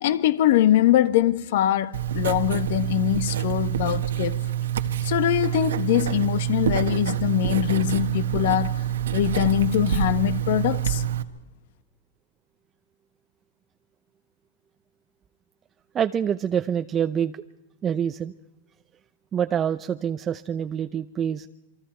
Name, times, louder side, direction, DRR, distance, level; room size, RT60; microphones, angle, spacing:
voice 1, 0.0-4.4 5.0-8.8 9.1-11.0, left 13 dB, 65° left, 1.4 m, -23 dB
Writing, 1.9-11.2, right 10 dB, 85° right, 1.4 m, -26 dB
voice 2, 15.9-17.4 17.8-18.3 19.3-21.5, right 8 dB, 25° right, 0.7 m, -26 dB
27.5 x 24.0 x 4.5 m
hypercardioid pair, 125°, 0 cm